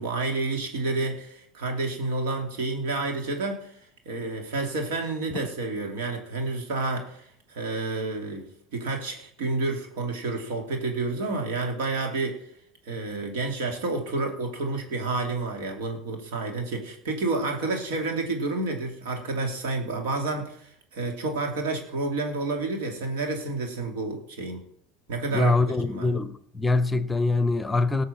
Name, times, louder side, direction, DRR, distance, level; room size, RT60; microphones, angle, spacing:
voice 1, 0.0-3.7 4.0-12.4 12.9-24.6 25.1-26.1, right 3 dB, 75° right, 3.2 m, -30 dB
voice 2, 25.3-28.0, left 3 dB, 10° left, 0.9 m, -24 dB
18.0 x 6.5 x 5.9 m
hypercardioid pair, 90°, 0 cm